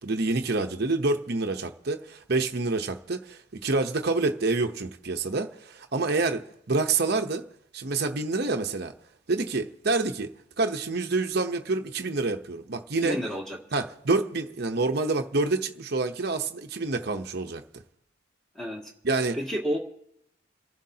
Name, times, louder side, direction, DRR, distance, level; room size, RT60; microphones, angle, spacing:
voice 1, 0.0-7.5 7.7-8.9 9.3-10.3 10.6-13.2 13.7-17.8 19.0-19.4, right 3 dB, 50° right, 0.8 m, -27 dB
voice 2, 13.0-13.6 18.5-18.9 19.3-19.8, equal, 5° left, 2.1 m, -30 dB
30.0 x 11.5 x 2.8 m
head